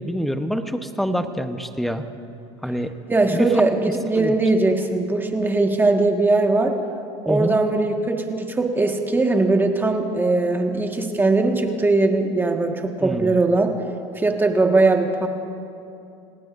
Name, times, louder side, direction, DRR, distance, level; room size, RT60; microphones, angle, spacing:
voice 1, 0.0-2.0 2.6-2.9 3.3-3.5 4.1-4.3 7.3-7.6 13.0-13.4, equal, ahead, 8 dB, 0.9 m, -26 dB
voice 2, 3.1-6.7 7.2-13.7 14.2-15.3, right 3 dB, 15° right, 3 dB, 1.7 m, -20 dB
27.0 x 19.0 x 2.6 m, 2.7 s
supercardioid pair, 105°, 14 cm